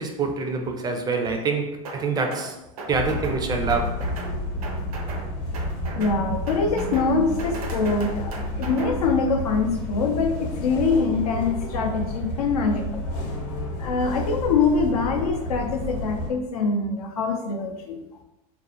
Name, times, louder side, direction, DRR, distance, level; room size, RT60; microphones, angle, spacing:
voice 1, 0.0-2.6 2.9-4.1, right 4 dB, 20° right, 4 dB, 0.3 m, -26 dB
sound 1, 1.8-2.5 2.8-3.4 3.7-4.3 4.6-5.3 5.5-6.2 6.5-7.1 7.4-8.9, right 2 dB, 80° right, 0.6 m, -37 dB
sound 2, 2.9-16.3, left 1 dB, 50° left, 0.8 m, -31 dB
voice 2, 5.9-13.1 13.8-18.0, left 4 dB, 85° left, 3 dB, 0.5 m, -24 dB
2.5 x 2.1 x 2.8 m, 0.92 s
hypercardioid pair, 105°, 19 cm